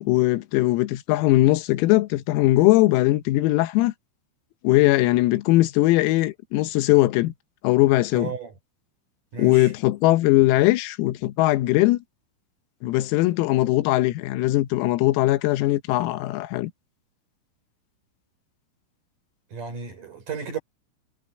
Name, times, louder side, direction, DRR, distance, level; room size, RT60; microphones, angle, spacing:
voice 1, 0.0-3.9 4.6-7.3 7.6-8.3 9.4-12.0 12.8-16.7, left 17 dB, 90° left, 3.8 m, -20 dB
voice 2, 8.1-8.5 9.3-9.7 19.5-20.6, right 6 dB, 40° right, 5.7 m, -33 dB
omnidirectional pair, 6.0 m